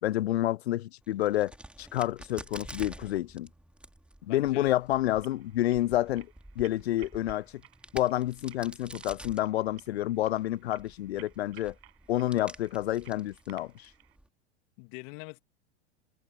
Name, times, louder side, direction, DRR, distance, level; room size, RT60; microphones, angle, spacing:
voice 1, 0.0-1.5 1.8-3.5 4.3-6.3 6.6-7.5 7.9-11.7 12.1-13.9, left 14 dB, 70° left, 0.8 m, -29 dB
Crack, 1.0-14.3, right 1 dB, 5° right, 2.7 m, -49 dB
voice 2, 4.3-4.7 14.8-15.4, left 32 dB, 50° left, 3.0 m, -42 dB
sound 1, 5.0-14.2, right 17 dB, 65° right, 7.4 m, -58 dB
hypercardioid pair, 90°, 33 cm